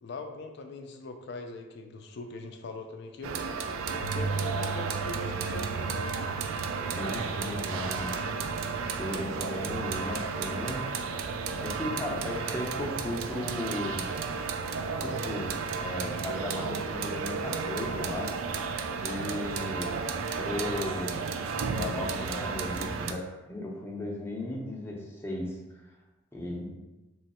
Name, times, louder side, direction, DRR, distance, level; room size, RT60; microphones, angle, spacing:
voice 1, 0.0-3.4 3.9-6.3, left 2 dB, 55° left, 5 dB, 0.4 m, -41 dB
sound 1, 3.2-23.1, right 5 dB, 75° right, 0.3 m, -33 dB
sound 2, 4.0-12.7, right 4 dB, 40° right, 0.7 m, -40 dB
voice 2, 6.9-8.2 9.0-10.8 11.6-14.0 15.0-18.4 19.0-20.0 20.4-21.1 21.7-25.6 26.3-26.7, left 1 dB, 10° left, -2 dB, 0.6 m, -36 dB
3.1 x 3.0 x 4.2 m, 1.0 s
head